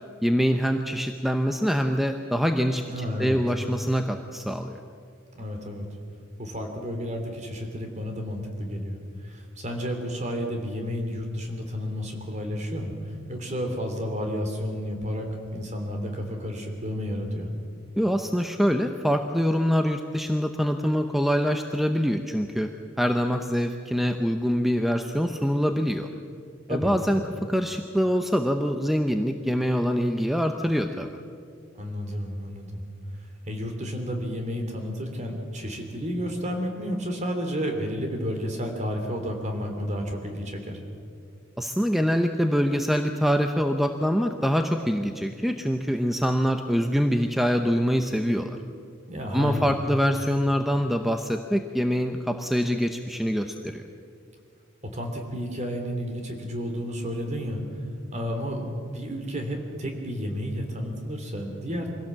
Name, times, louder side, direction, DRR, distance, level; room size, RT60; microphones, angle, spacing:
voice 1, 0.2-4.8 18.0-22.7 23.0-26.1 26.7-27.2 27.5-31.1 41.6-48.6 49.3-53.8, equal, ahead, 6 dB, 0.7 m, -24 dB
voice 2, 2.9-3.4 5.3-5.9 6.4-9.0 9.2-17.5 26.7-26.9 31.7-32.8 33.4-40.8 49.1-49.7 54.9-57.6 58.1-61.9, equal, 35° right, 4 dB, 3.2 m, -31 dB
24.0 x 16.5 x 7.5 m, 2.3 s
head